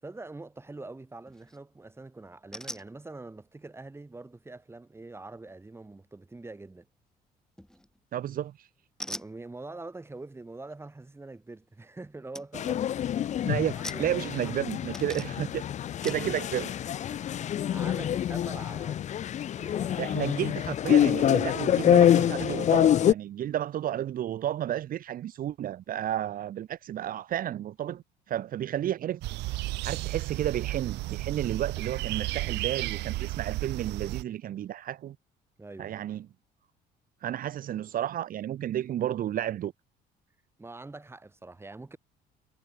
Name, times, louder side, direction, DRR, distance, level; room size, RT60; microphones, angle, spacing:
voice 1, 0.0-6.9 9.1-12.8 13.2-14.0 14.4-14.5 15.4-15.5 15.8-15.9 17.1-19.1 19.6-20.2 32.2-32.3 35.6-35.9 40.6-42.0, right 2 dB, 15° right, 5.5 m, -44 dB
sound 1, 1.2-1.6 2.5-2.9 7.6-8.0 9.0-9.3 11.8-11.9 12.3-12.5 12.8-13.2 13.8-14.6 14.9-15.5 16.0-16.3, left 1 dB, 5° left, 7.8 m, -41 dB
voice 2, 8.1-8.7 13.4-13.7 14.0-15.6 16.0-16.7 20.0-28.0 28.3-29.2 29.8-35.1 35.8-36.3 37.2-39.7, right 11 dB, 55° right, 1.6 m, -32 dB
sound 2, 12.5-23.1, left 10 dB, 45° left, 0.5 m, -26 dB
sound 3, 29.2-34.2, right 19 dB, 90° right, 6.1 m, -33 dB
cardioid pair, 110°, 17 cm